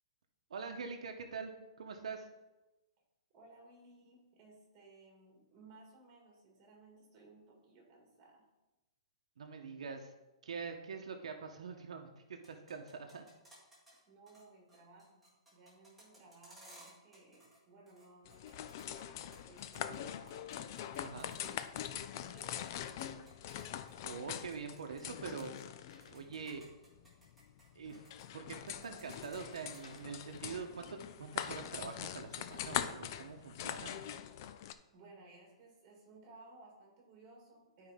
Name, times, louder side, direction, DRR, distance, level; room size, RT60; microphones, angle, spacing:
voice 1, 0.5-1.5 1.8-2.3 9.4-10.1 10.4-13.2 19.9-20.0 21.0-21.3 24.0-25.5 26.1-26.6 27.7-28.0 28.3-33.9, right 5 dB, 85° right, 4 dB, 0.8 m, -44 dB
voice 2, 3.3-8.5 14.1-15.2 15.5-20.6 21.2-21.6 21.9-23.0 34.9-37.9, right 3 dB, 25° right, -1 dB, 2.0 m, -59 dB
sound 1, 12.3-14.0 14.3-14.4 14.7-17.6 17.9-20.0 20.3-25.0 25.3-25.6 26.0-28.2 28.5-29.8, right 1 dB, ahead, 1.9 m, -60 dB
sound 2, 18.3-34.7, left 10 dB, 35° left, 0.3 m, -43 dB
sound 3, 22.5-23.4 25.6-26.8 27.2-27.3 29.3-30.6 31.7-32.8 33.3-33.9, left 4 dB, 70° left, 1.1 m, -64 dB
11.0 x 4.7 x 3.6 m, 1.0 s
hypercardioid pair, 170°, 3 cm